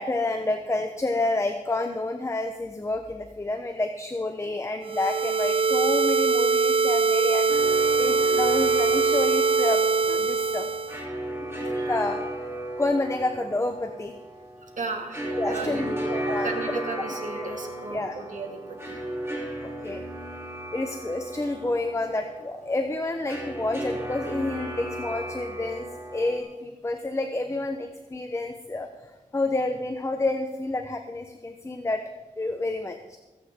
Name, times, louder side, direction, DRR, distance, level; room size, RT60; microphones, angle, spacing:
voice 1, 0.0-10.7 11.4-12.5 12.8-14.1 15.4-16.5 17.4-17.5 17.9-18.1 19.8-20.0 20.7-25.8 26.1-28.9 29.3-32.0 32.4-33.2, left 2 dB, 20° left, 6 dB, 0.8 m, -29 dB
sound 1, 4.9-11.0, right 4 dB, 40° right, 0.4 m, -22 dB
sound 2, 7.5-26.4, right 1 dB, 15° right, 2.9 m, -35 dB
voice 2, 12.5-12.8 14.6-19.0, right 3 dB, 65° right, 2 dB, 2.1 m, -36 dB
21.5 x 8.5 x 3.7 m, 1.1 s
wide cardioid pair, 80°, 14 cm